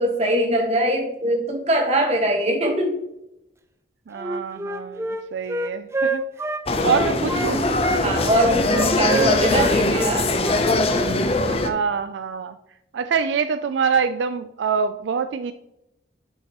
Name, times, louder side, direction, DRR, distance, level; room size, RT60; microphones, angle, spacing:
voice 1, 0.0-3.0 8.0-10.3, right 1 dB, 35° right, 1 dB, 1.5 m, -22 dB
Wind instrument woodwind instrument, 4.1-7.5 7.8-11.1, right 2 dB, 15° right, 0.4 m, -27 dB
voice 2, 4.1-6.2 6.8-7.6 11.5-12.6 12.9-15.5, right 6 dB, 75° right, 10 dB, 0.4 m, -25 dB
sound 1, 6.7-11.7, left 2 dB, 30° left, 0.6 m, -21 dB
7.5 x 5.6 x 3.0 m, 0.85 s
head